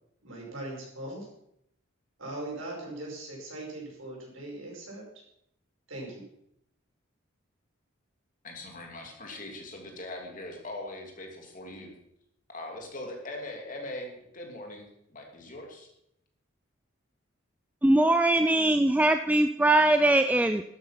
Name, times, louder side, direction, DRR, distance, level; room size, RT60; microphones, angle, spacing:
voice 1, 0.2-1.3 2.2-5.0 5.9-6.2, right 1 dB, 70° right, -2 dB, 6.0 m, -40 dB
voice 2, 8.4-11.9 12.5-15.9, left 1 dB, 40° left, 1 dB, 2.7 m, -41 dB
voice 3, 17.8-20.6, right 1 dB, 5° right, 8 dB, 0.4 m, -21 dB
12.5 x 9.1 x 5.8 m, 0.76 s
head